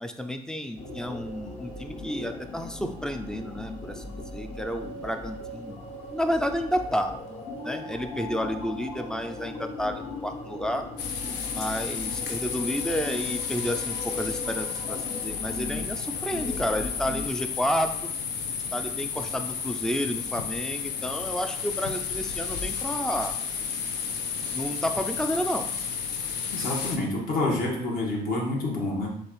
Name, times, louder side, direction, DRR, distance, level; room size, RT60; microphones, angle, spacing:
voice 1, 0.0-5.8 6.1-7.1 7.6-10.9 11.5-18.1 18.7-23.3 24.5-25.7, equal, 5° left, 6 dB, 0.4 m, -31 dB
sound 1, 0.8-17.3, left 2 dB, 40° left, 0.8 m, -39 dB
sound 2, 11.0-27.0, left 6 dB, 80° left, 0.7 m, -32 dB
voice 2, 26.5-29.1, left 2 dB, 60° left, -3 dB, 1.5 m, -28 dB
6.6 x 2.4 x 3.2 m, 0.73 s
cardioid pair, 110°, 17 cm